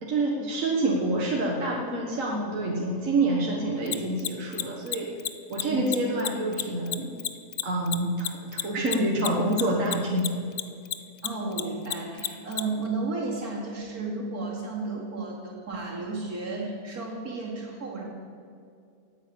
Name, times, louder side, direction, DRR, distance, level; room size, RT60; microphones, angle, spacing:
voice 1, 0.0-5.1 5.5-7.1 7.6-10.3, right 2 dB, 60° right, -2 dB, 1.8 m, -27 dB
Mechanisms, 3.9-10.6 10.9-12.6, left 13 dB, 80° left, 1.2 m, -29 dB
voice 2, 11.2-18.0, right 3 dB, 75° right, -2 dB, 3.1 m, -33 dB
17.0 x 9.2 x 7.0 m, 2.3 s
omnidirectional pair, 1.6 m